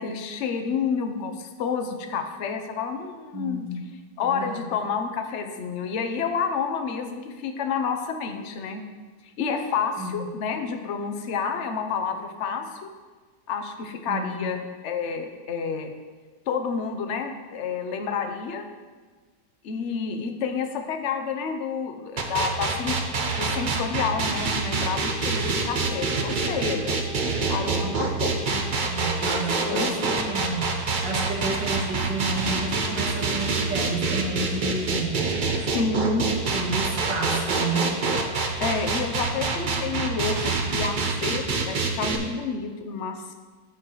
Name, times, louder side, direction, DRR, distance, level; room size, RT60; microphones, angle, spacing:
voice 1, 0.0-3.7 4.2-8.8 9.2-12.9 13.5-15.9 16.5-18.6 19.6-27.0 27.5-28.4 29.6-30.3 35.7-36.2 38.6-43.3, left 5 dB, 55° left, 6 dB, 0.8 m, -29 dB
voice 2, 3.3-3.8 4.2-4.6 10.0-10.1 14.1-14.4 27.8-27.9 28.5-28.6 28.9-29.9 30.3-30.7 31.0-35.3 36.5-38.0, right 2 dB, 85° right, -1 dB, 2.2 m, -30 dB
sound 1, 22.2-42.2, right 4 dB, 50° right, 0.5 m, -26 dB
sound 2, 24.7-28.9, left 5 dB, 85° left, 1.4 m, -41 dB
13.5 x 4.8 x 3.8 m, 1.4 s
omnidirectional pair, 1.9 m